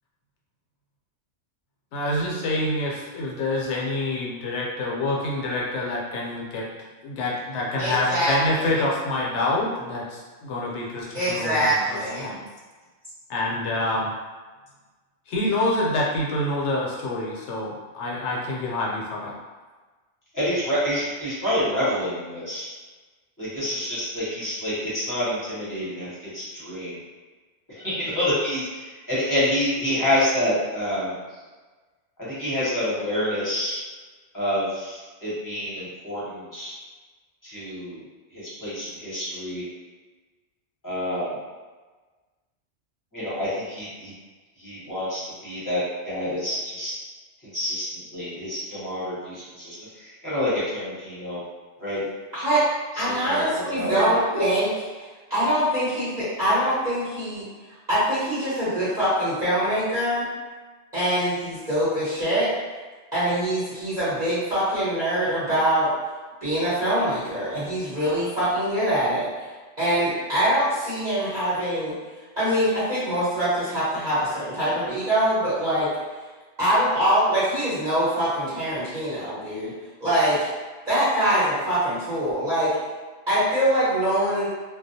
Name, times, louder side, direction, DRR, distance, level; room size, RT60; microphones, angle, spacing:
voice 1, 1.9-6.7 7.0-11.8 12.2-12.4 13.3-14.1 15.3-19.4, left 1 dB, 75° left, -3 dB, 0.9 m, -27 dB
voice 2, 7.8-8.3 11.1-12.3 52.3-52.6 53.0-54.7 55.3-57.4 57.9-60.3 60.9-62.5 63.1-65.9 66.4-69.4 69.8-71.9 72.4-75.9 76.6-79.7 80.0-80.5 80.9-82.7 83.3-84.5, right 1 dB, 40° right, -14 dB, 0.9 m, -23 dB
voice 3, 20.3-22.7 23.4-27.0 27.7-31.2 32.2-33.8 34.3-36.7 37.4-38.0 38.3-39.6 40.8-41.3 43.1-44.1 44.6-46.9 47.5-51.4 51.8-52.0 53.0-53.5 53.7-54.1, left 1 dB, 20° left, -11 dB, 0.8 m, -28 dB
2.3 x 2.0 x 2.6 m, 1.3 s
omnidirectional pair, 1.2 m